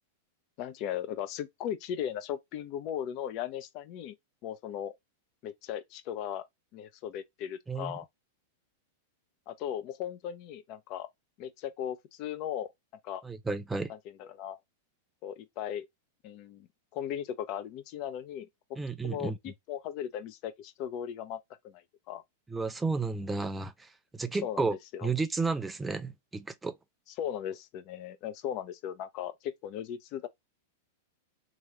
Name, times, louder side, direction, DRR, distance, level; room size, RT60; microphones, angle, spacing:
voice 1, 0.6-4.1 4.4-4.9 5.4-6.4 6.7-8.0 9.5-11.1 11.4-12.7 13.0-13.2 13.9-14.6 15.2-15.9 16.2-16.7 16.9-18.5 19.0-22.2 24.4-25.1 27.2-30.3, left 10 dB, 45° left, 0.6 m, -37 dB
voice 2, 7.7-8.0 13.2-13.9 18.8-19.4 22.5-24.8 25.0-26.8, right 4 dB, 10° right, 0.5 m, -32 dB
3.1 x 2.5 x 2.9 m
figure-of-eight pair, 100°, 0 cm